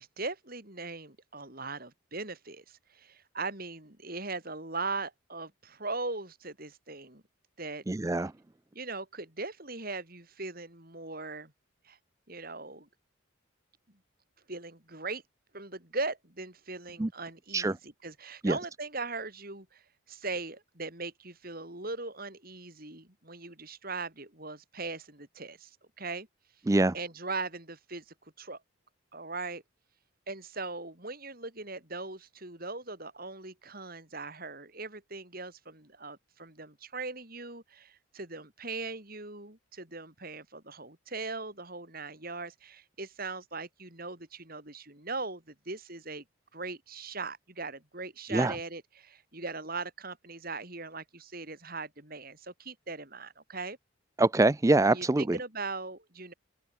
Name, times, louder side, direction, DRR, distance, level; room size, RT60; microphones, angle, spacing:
voice 1, 0.0-7.2 7.6-7.8 8.7-11.5 11.8-12.0 12.3-12.9 14.5-15.2 15.5-17.8 18.0-26.3 26.9-28.6 29.1-29.6 30.3-46.2 46.5-53.8 54.9-56.3, right 3 dB, 45° right, 4.5 m, -39 dB
voice 2, 7.9-8.3 17.0-17.1 17.5-17.7 18.4-18.6 26.7-26.9 48.3-48.6 54.2-55.4, right 2 dB, 15° right, 0.4 m, -24 dB
open air
head